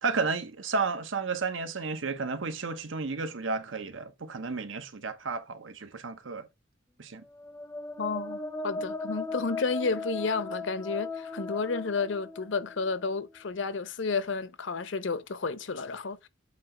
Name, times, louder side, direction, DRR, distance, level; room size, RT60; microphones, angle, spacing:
voice 1, 0.0-6.5 7.0-7.2, right 4 dB, 85° right, 0.9 m, -32 dB
sound 1, 7.3-13.1, left 3 dB, 15° left, 0.5 m, -37 dB
voice 2, 8.0-16.3, left 4 dB, 75° left, 0.7 m, -31 dB
8.2 x 2.9 x 4.9 m
head